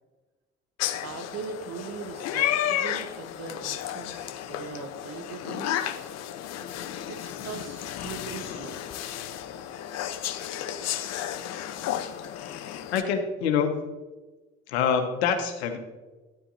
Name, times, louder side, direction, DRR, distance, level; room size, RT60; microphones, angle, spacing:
sound 1, 0.8-13.0, left 11 dB, 50° left, 0.8 m, -32 dB
voice 1, 1.0-5.8 7.1-8.8, right 5 dB, 50° right, 8 dB, 1.2 m, -40 dB
voice 2, 12.9-13.8 14.7-15.8, left 7 dB, 75° left, 6 dB, 1.3 m, -25 dB
12.5 x 10.5 x 2.7 m, 1.2 s
figure-of-eight pair, 60°, 33 cm